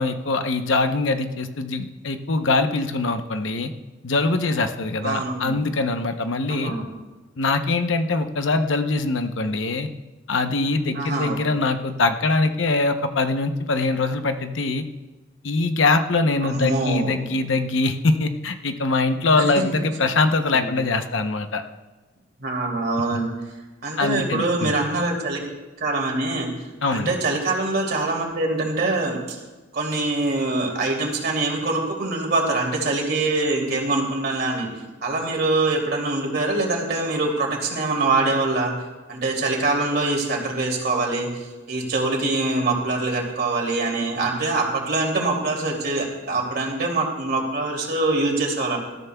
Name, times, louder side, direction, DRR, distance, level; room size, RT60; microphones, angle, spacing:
voice 1, 0.0-3.7 4.0-6.7 7.4-9.9 10.3-14.9 15.4-21.6 24.0-24.7 26.8-27.1, left 3 dB, 75° left, 7 dB, 0.9 m, -23 dB
voice 2, 5.0-5.6 6.5-6.8 10.9-11.6 16.4-17.1 20.5-20.7 22.4-23.3 23.8-25.4 25.8-26.5 26.9-29.4 29.7-34.7 35.0-38.7 39.1-41.3 41.7-48.8, right 2 dB, 55° right, 0 dB, 2.8 m, -24 dB
19.5 x 13.5 x 2.3 m, 1.2 s
head